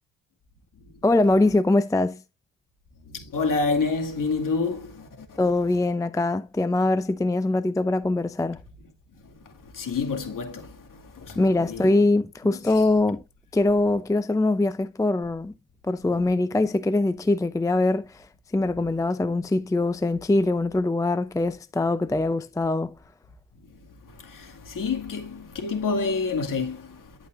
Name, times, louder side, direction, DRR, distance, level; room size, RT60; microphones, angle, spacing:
voice 1, 1.0-2.2 5.4-8.6 11.4-13.2 13.5-15.5 15.8-18.3 18.5-22.9, left 2 dB, 10° left, 0.5 m, -23 dB
voice 2, 3.1-5.3 9.7-11.9 24.1-27.0, left 4 dB, 55° left, 2.3 m, -28 dB
12.0 x 5.1 x 2.6 m
cardioid pair, 80°, 40 cm